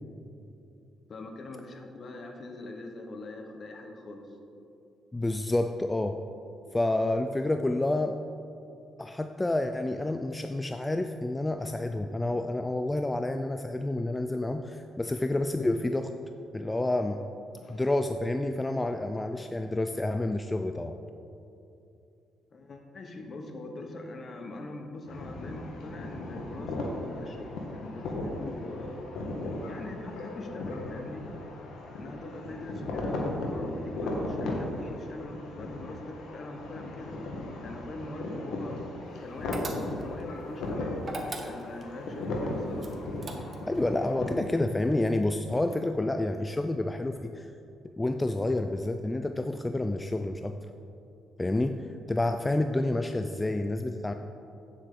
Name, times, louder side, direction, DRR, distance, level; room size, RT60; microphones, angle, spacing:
voice 1, 1.1-4.3 17.6-17.8 22.5-29.0 29.7-31.3 31.9-37.2 37.6-41.0 41.3-42.9, left 2 dB, 45° left, 4 dB, 1.1 m, -42 dB
voice 2, 5.1-6.2 6.7-8.2 9.0-16.2 16.5-17.2 17.7-21.0 43.7-47.5 48.0-50.6 51.4-54.1, left 2 dB, 15° left, 7 dB, 0.3 m, -29 dB
sound 1, 25.1-44.3, left 2 dB, 85° left, 1.2 m, -36 dB
sound 2, 39.5-40.2 41.0-41.9 42.8-43.8, right 2 dB, 40° right, 1.1 m, -39 dB
8.9 x 7.4 x 3.7 m, 2.8 s
cardioid pair, 90°, 0 cm